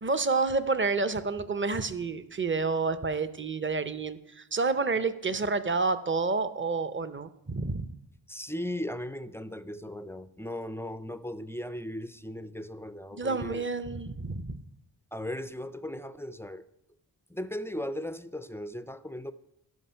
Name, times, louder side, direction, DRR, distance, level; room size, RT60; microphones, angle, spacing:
voice 1, 0.0-7.9 13.1-14.6, right 4 dB, 25° right, 0.7 m, -29 dB
voice 2, 8.3-13.7 15.1-16.6 17.3-19.3, left 1 dB, 5° left, 0.3 m, -37 dB
12.0 x 5.2 x 5.6 m
cardioid pair, 45°, 46 cm